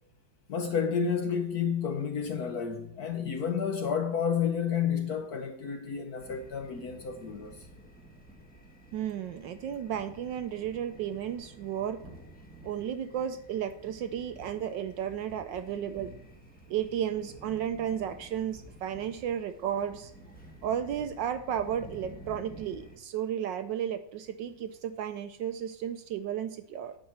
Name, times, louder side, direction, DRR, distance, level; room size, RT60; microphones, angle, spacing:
voice 1, 0.5-7.7, left 7 dB, 60° left, 1.0 m, -30 dB
sound 1, 6.2-23.0, right 1 dB, 5° left, 0.8 m, -51 dB
voice 2, 8.9-12.0 12.6-16.1 16.7-20.1 20.6-27.0, right 9 dB, 75° right, 1.1 m, -33 dB
9.4 x 4.8 x 7.2 m
omnidirectional pair, 2.3 m